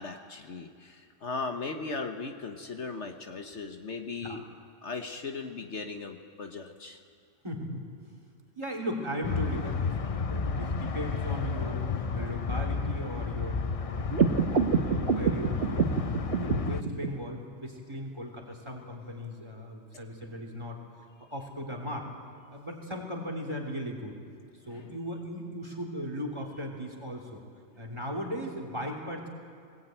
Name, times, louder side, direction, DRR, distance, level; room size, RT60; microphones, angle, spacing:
voice 1, 0.0-4.4 4.8-7.0 24.7-25.0, left 4 dB, 60° left, 5 dB, 1.4 m, -38 dB
voice 2, 7.4-7.9 8.5-14.4 14.7-15.9 16.2-22.1 22.5-24.2 24.6-27.4 27.8-29.3, equal, 20° right, 2 dB, 3.2 m, -37 dB
sound 1, 9.2-16.8, left 5 dB, 40° left, 0.5 m, -32 dB
sound 2, 14.1-17.1, right 5 dB, 50° right, 1.4 m, -27 dB
20.5 x 19.5 x 9.0 m, 2.1 s
omnidirectional pair, 1.4 m